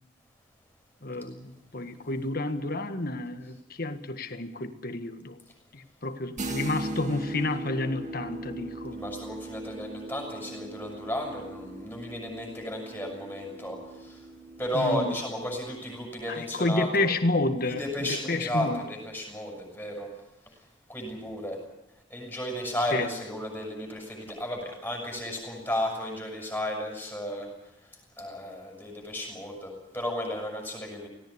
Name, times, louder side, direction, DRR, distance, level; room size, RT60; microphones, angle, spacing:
voice 1, 1.0-5.4 5.7-9.0 14.7-15.1 16.3-18.8 22.9-23.1, left 2 dB, 45° left, 8 dB, 1.6 m, -30 dB
sound 1, 6.4-16.0, right 2 dB, 35° right, 1.8 m, -40 dB
voice 2, 8.9-14.3 14.6-17.1 17.6-20.1 20.4-21.6 22.1-31.1, left 1 dB, 10° left, 0 dB, 6.5 m, -34 dB
18.0 x 17.5 x 9.8 m, 0.91 s
head